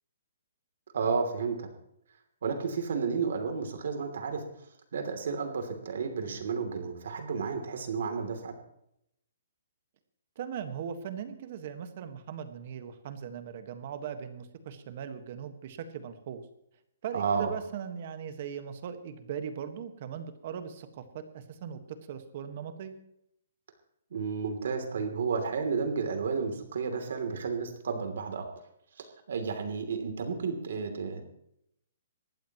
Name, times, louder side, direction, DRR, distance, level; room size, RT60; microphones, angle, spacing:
voice 1, 0.9-1.7 2.4-4.4 4.9-8.5 17.1-17.5 24.1-28.5 29.0-31.2, right 5 dB, 60° right, 6 dB, 3.0 m, -32 dB
voice 2, 10.4-16.4 17.0-21.8 22.1-22.9, right 8 dB, 35° right, 9 dB, 1.5 m, -39 dB
20.0 x 15.0 x 3.1 m, 0.76 s
hypercardioid pair, 175°, 0 cm